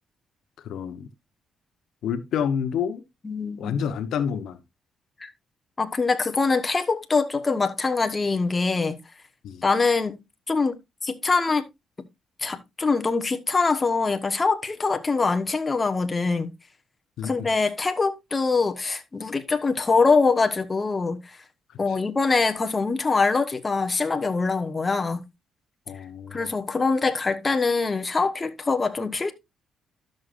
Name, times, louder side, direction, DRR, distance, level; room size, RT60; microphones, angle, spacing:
voice 1, 0.6-1.1 2.0-3.0 3.6-4.6 9.4-9.6 17.2-17.5 21.9-22.0 25.9-26.4, left 7 dB, 75° left, 0.9 m, -28 dB
voice 2, 3.2-3.8 5.2-5.3 5.8-9.0 9.6-10.2 10.5-10.8 11.0-11.6 12.4-16.5 17.2-21.4 21.8-25.2 26.3-29.3, left 4 dB, 25° left, 1.1 m, -23 dB
12.5 x 6.5 x 2.5 m
cardioid pair, 90°, 0 cm